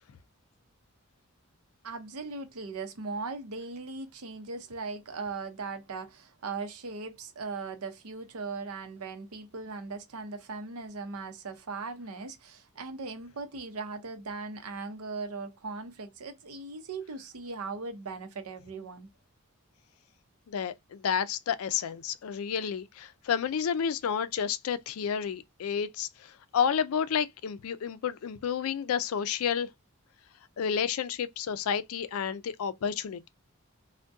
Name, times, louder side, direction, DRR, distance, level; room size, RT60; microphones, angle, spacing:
voice 1, 1.8-19.1, right 4 dB, 90° right, 0.7 m, -39 dB
voice 2, 20.5-29.7 30.6-33.3, left 7 dB, 75° left, 0.4 m, -30 dB
3.5 x 2.2 x 2.5 m
head